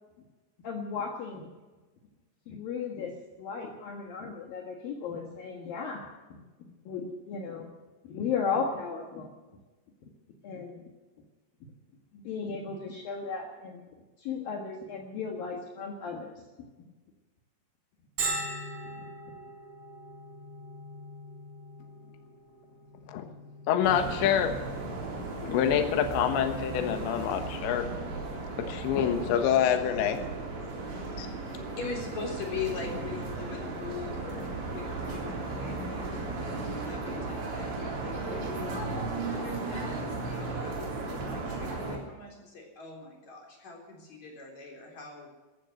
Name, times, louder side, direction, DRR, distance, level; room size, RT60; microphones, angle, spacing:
voice 1, 0.6-1.5 2.5-6.4 6.9-7.7 8.0-9.3 10.4-10.8 12.1-13.8 14.2-16.4 19.0-19.1, left 5 dB, 60° left, 2 dB, 2.9 m, -35 dB
Bell, 18.2-33.6, right 2 dB, 35° right, 6.1 m, -43 dB
voice 2, 23.7-24.6 25.4-27.9 28.6-30.2 31.2-31.3, left 9 dB, 80° left, 7 dB, 3.6 m, -26 dB
sound 1, 23.8-42.0, right 3 dB, 80° right, 6.0 m, -35 dB
voice 3, 31.4-38.8 39.2-45.3, left 5 dB, 40° left, 1 dB, 4.8 m, -41 dB
14.5 x 14.0 x 6.5 m, 1.2 s
omnidirectional pair, 5.1 m